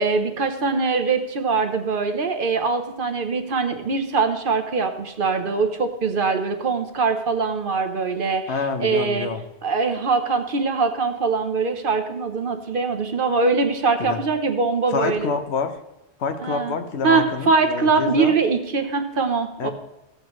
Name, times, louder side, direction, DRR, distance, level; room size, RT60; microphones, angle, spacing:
voice 1, 0.0-8.4 8.8-9.3 9.6-15.3 16.4-16.7 17.0-19.7, right 4 dB, 55° right, 6 dB, 1.0 m, -22 dB
voice 2, 8.5-9.4 14.0-14.2 14.9-15.8 16.2-18.4 19.6-19.7, left 5 dB, 75° left, 7 dB, 1.1 m, -27 dB
14.0 x 7.9 x 3.1 m, 0.98 s
omnidirectional pair, 1.1 m